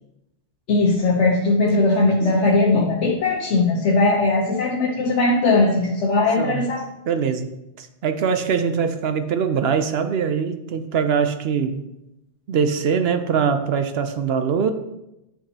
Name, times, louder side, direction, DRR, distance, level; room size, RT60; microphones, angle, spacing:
voice 1, 0.7-6.8, left 2 dB, 80° left, -1 dB, 1.1 m, -19 dB
voice 2, 7.1-7.5 7.8-11.8 12.5-14.7, right 6 dB, 65° right, 8 dB, 0.8 m, -22 dB
9.8 x 5.9 x 2.8 m, 0.91 s
omnidirectional pair, 1.2 m